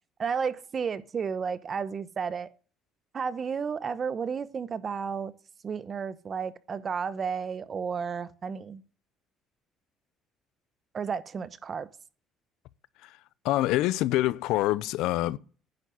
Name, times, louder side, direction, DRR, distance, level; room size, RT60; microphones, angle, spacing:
voice 1, 0.2-2.5 3.1-5.3 5.6-8.8 10.9-11.9, right 6 dB, 35° right, 1.0 m, -32 dB
voice 2, 13.4-15.4, left 16 dB, 85° left, 0.6 m, -26 dB
10.5 x 7.3 x 9.4 m
cardioid pair, 140°, 0 cm